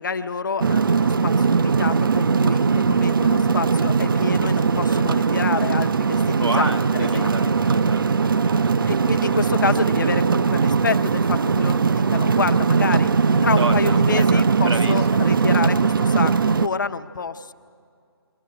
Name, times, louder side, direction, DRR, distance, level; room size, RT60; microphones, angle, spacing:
voice 1, 0.0-6.7 7.0-7.3 8.9-13.1 13.4-17.5, left 5 dB, 50° left, 9 dB, 0.7 m, -28 dB
sound 1, 0.6-16.7, right 5 dB, 55° right, 0.5 m, -20 dB
voice 2, 6.4-9.4 13.6-15.2, right 2 dB, 85° right, 5 dB, 2.0 m, -31 dB
22.5 x 18.0 x 8.6 m, 2.3 s
figure-of-eight pair, 150°, 14 cm